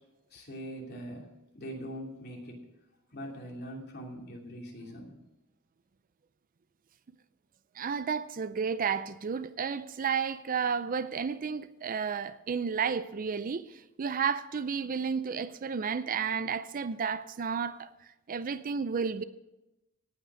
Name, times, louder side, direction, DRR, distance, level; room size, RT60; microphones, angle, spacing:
voice 1, 0.3-1.3 1.5-2.6 3.1-5.2, equal, 50° left, 2.9 m, -42 dB
voice 2, 7.8-17.9 18.3-19.2, right 6 dB, 40° right, 0.4 m, -32 dB
17.5 x 6.0 x 6.3 m
head